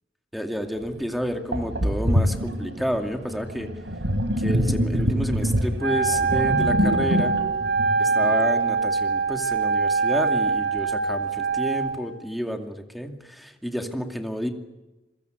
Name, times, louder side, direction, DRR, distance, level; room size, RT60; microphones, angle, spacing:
voice 1, 0.3-3.7 4.4-7.4 8.0-14.5, equal, ahead, 4 dB, 2.5 m, -30 dB
Sink (filling or washing), 0.8-0.9 1.5-8.8, equal, 85° right, 4.0 m, -25 dB
Wind instrument woodwind instrument, 5.8-12.0, right 4 dB, 65° right, 6.7 m, -23 dB
27.0 x 23.5 x 8.0 m, 1.0 s
head